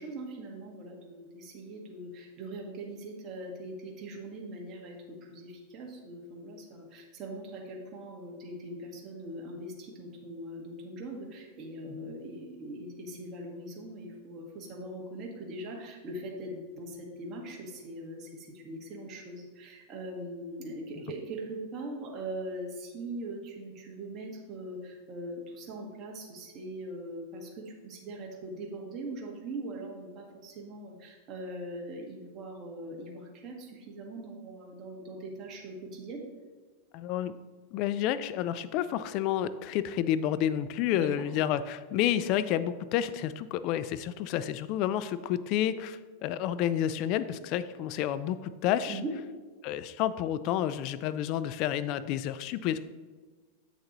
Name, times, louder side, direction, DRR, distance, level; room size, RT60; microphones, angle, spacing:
voice 1, 0.0-36.3 40.9-41.1 48.9-49.1, right 1 dB, 35° right, 0 dB, 1.6 m, -41 dB
voice 2, 36.9-37.4 37.7-49.0 49.6-52.8, left 11 dB, 50° left, 14 dB, 0.4 m, -30 dB
8.0 x 6.6 x 3.0 m, 1.4 s
supercardioid pair, 125°, 0 cm